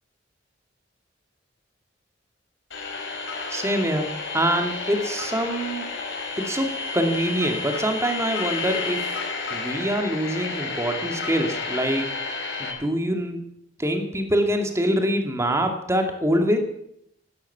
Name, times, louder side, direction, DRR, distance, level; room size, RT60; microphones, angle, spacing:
sound 1, 2.7-12.7, left 4 dB, 80° left, 4.3 m, -31 dB
voice 1, 3.5-4.1 4.3-5.9 6.4-9.0 9.5-12.1 12.6-13.4 13.8-16.6, equal, 15° right, 5 dB, 2.4 m, -24 dB
16.0 x 12.0 x 6.8 m, 0.71 s
head